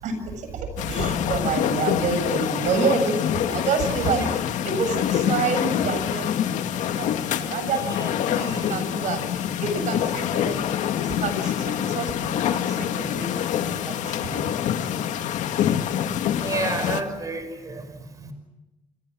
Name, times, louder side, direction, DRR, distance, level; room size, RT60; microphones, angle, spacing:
voice 1, 0.0-6.3 6.6-14.5, right 4 dB, 80° right, 7.6 m, -29 dB
sound 1, 0.8-17.0, left 10 dB, 90° left, 2.0 m, -26 dB
voice 2, 16.4-17.8 18.2-18.3, right 3 dB, 25° right, 5.3 m, -30 dB
29.0 x 28.0 x 6.3 m
cardioid pair, 135°, 12 cm